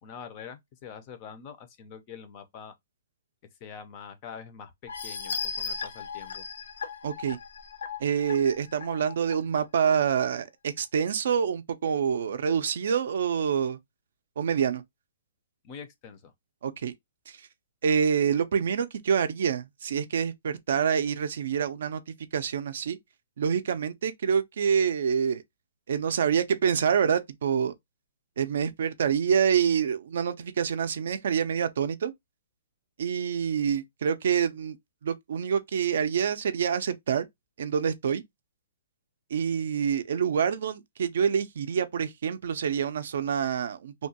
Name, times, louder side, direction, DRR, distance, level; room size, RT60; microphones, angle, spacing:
voice 1, 0.0-2.7 3.6-6.5 15.6-16.3, left 7 dB, 25° left, 0.4 m, -45 dB
sound 1, 4.9-9.3 9.8-9.9 10.3-10.4, left 5 dB, 75° left, 0.5 m, -37 dB
voice 2, 7.0-7.4 8.0-13.8 14.4-14.8 16.6-16.9 17.3-17.4 17.8-22.0 22.3-23.0 23.4-25.4 25.9-27.7 28.4-32.1 33.0-34.8 35.0-37.3 37.6-38.2 39.3-43.9, right 7 dB, 55° right, 0.4 m, -26 dB
2.8 x 2.2 x 2.7 m
hypercardioid pair, 170°, 0 cm